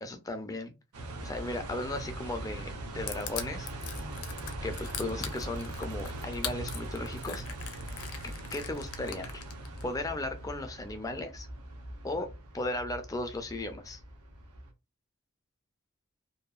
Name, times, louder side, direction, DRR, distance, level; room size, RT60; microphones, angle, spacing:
voice 1, 0.0-0.7 1.2-3.7 4.6-7.4 7.7-7.8 8.5-9.4 9.8-11.5 12.0-12.3 12.5-14.0, left 2 dB, 15° left, 0.4 m, -36 dB
sound 1, 0.9-14.7, right 1 dB, 80° right, 0.7 m, -41 dB
Crushing, 3.1-9.8, left 9 dB, 75° left, 0.5 m, -40 dB
2.7 x 2.2 x 2.3 m
head